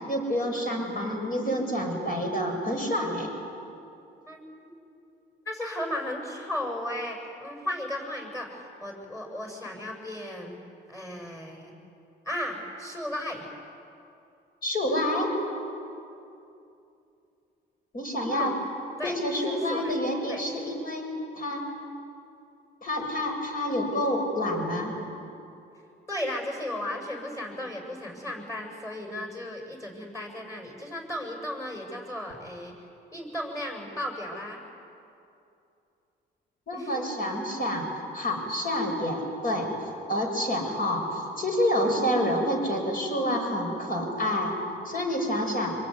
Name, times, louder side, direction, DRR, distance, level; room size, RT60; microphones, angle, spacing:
voice 1, 0.1-3.3 14.6-15.3 17.9-18.5 19.0-21.1 21.3-21.6 22.8-24.9 36.7-37.9 38.1-39.7 40.1-44.5 44.8-45.8, left 1 dB, 45° left, 2 dB, 7.1 m, -28 dB
voice 2, 4.3-4.7 5.5-10.6 10.9-11.7 12.3-13.5 18.3-18.5 19.0-19.2 19.4-19.9 20.3-20.4 26.1-32.7 33.1-34.6 36.7-37.0, left 1 dB, 15° left, 2 dB, 7.7 m, -35 dB
26.0 x 22.5 x 9.8 m, 2.7 s
cardioid pair, 90°, 20 cm